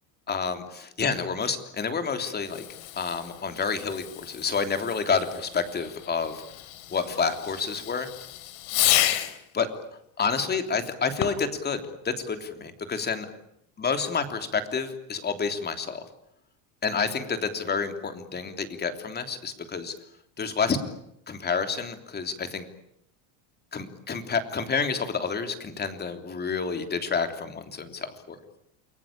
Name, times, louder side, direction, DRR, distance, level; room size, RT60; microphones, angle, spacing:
voice 1, 0.3-2.6 2.9-6.4 6.9-8.1 9.5-9.7 10.2-13.3 13.8-16.0 16.8-19.9 20.4-20.8 21.3-22.7 23.7-28.4, left 5 dB, 20° left, 7 dB, 3.3 m, -29 dB
Fireworks, 2.4-9.5 11.1-11.6, left 14 dB, 70° left, 3.7 m, -31 dB
29.5 x 21.5 x 8.8 m, 0.77 s
cardioid pair, 150°, 48 cm